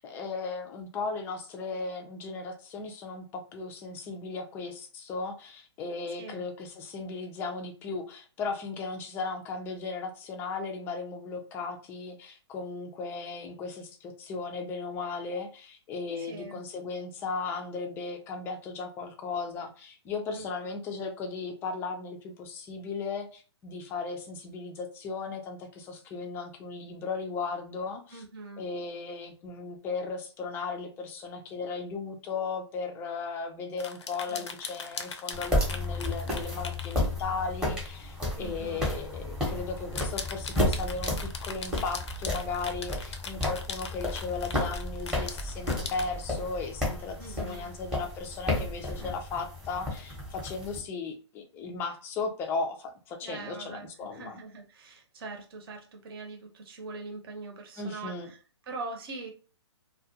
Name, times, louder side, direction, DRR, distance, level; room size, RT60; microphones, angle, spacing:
voice 1, 0.0-28.2 28.6-54.4 57.8-58.3, left 4 dB, 15° left, 4 dB, 0.3 m, -36 dB
voice 2, 16.2-16.6 20.3-20.5 28.1-28.6 34.3-34.5 38.4-38.9 47.2-47.7 53.2-58.4 58.7-59.3, right 3 dB, 50° right, 3 dB, 0.8 m, -42 dB
sound 1, 33.8-37.0 37.8-38.0 38.4-38.5 39.8-46.1, left 5 dB, 70° left, 0.5 m, -40 dB
sound 2, 35.3-50.8, left 1 dB, 5° right, 0.8 m, -32 dB
2.3 x 2.2 x 2.7 m, 0.36 s
hypercardioid pair, 140°, 15 cm